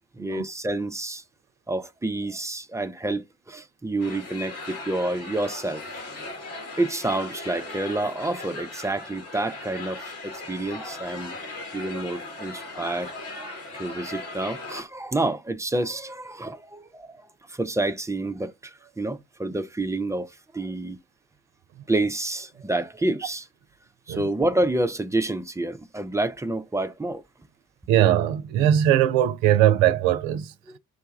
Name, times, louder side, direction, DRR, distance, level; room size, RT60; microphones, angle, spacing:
voice 1, 0.1-1.2 1.7-5.8 6.8-11.4 11.7-13.1 13.7-17.2 17.5-21.0 21.9-23.5 24.1-27.2, right 2 dB, 10° right, 0.4 m, -28 dB
sound 1, 4.0-14.8, left 2 dB, 60° left, 1.8 m, -38 dB
voice 2, 27.9-30.5, right 11 dB, 60° right, 0.6 m, -20 dB
4.8 x 2.2 x 4.1 m
figure-of-eight pair, 40°, 40 cm